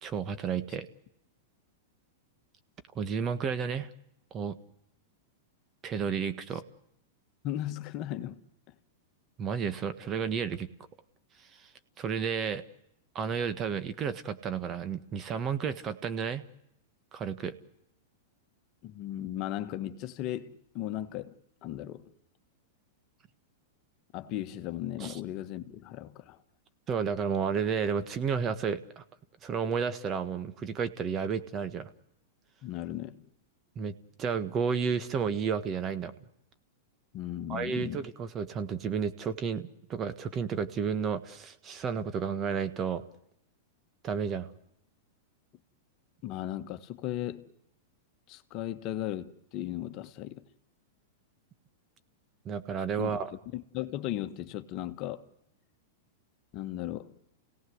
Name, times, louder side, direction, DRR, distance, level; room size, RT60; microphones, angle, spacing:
voice 1, 0.0-0.9 2.9-3.9 4.3-4.6 5.8-6.6 9.4-10.7 11.4-11.7 12.0-12.6 13.1-16.4 17.1-17.6 25.0-25.2 26.9-29.0 29.4-31.9 33.7-36.1 37.5-43.0 44.0-44.5 52.4-53.3, right 6 dB, 30° right, 1.6 m, -32 dB
voice 2, 7.4-8.4 18.8-22.1 24.1-26.4 32.6-33.3 37.1-38.0 46.2-47.5 48.3-50.4 53.0-53.2 53.5-55.2 56.5-57.2, left 13 dB, 45° left, 1.5 m, -36 dB
29.5 x 17.5 x 8.0 m
hypercardioid pair, 115°, 0 cm